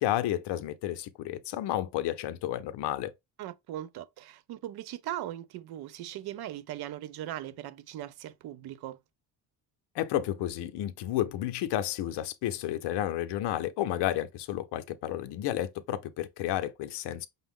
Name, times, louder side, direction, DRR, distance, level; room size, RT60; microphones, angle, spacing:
voice 1, 0.0-3.1 9.9-17.3, left 13 dB, 65° left, 0.6 m, -31 dB
voice 2, 3.4-9.0, right 13 dB, 60° right, 0.5 m, -39 dB
5.4 x 2.0 x 3.5 m
cardioid pair, 110°, 44 cm